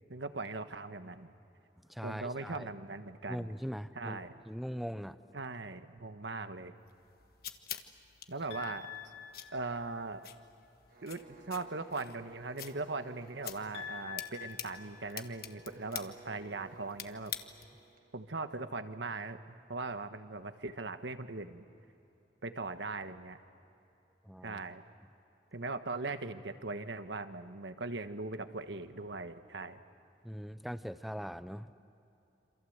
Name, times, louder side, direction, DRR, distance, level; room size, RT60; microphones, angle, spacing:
voice 1, 0.1-1.3 2.0-3.5 3.9-4.3 5.3-6.7 8.3-8.9 9.5-10.3 11.0-17.3 18.1-19.4 19.7-21.6 22.4-23.4 24.4-24.8 25.5-29.8, right 3 dB, 80° right, 9 dB, 1.3 m, -40 dB
voice 2, 1.9-2.7 3.3-4.2 4.5-5.2 24.2-24.6 30.2-31.7, equal, ahead, 12 dB, 0.7 m, -40 dB
sound 1, 6.9-17.9, left 10 dB, 55° left, 1.3 m, -48 dB
sound 2, 8.5-10.2 13.7-15.8, left 9 dB, 80° left, 6.0 m, -47 dB
sound 3, 10.9-18.6, right 4 dB, 50° right, 1.9 m, -58 dB
28.0 x 27.0 x 8.0 m, 2.9 s
head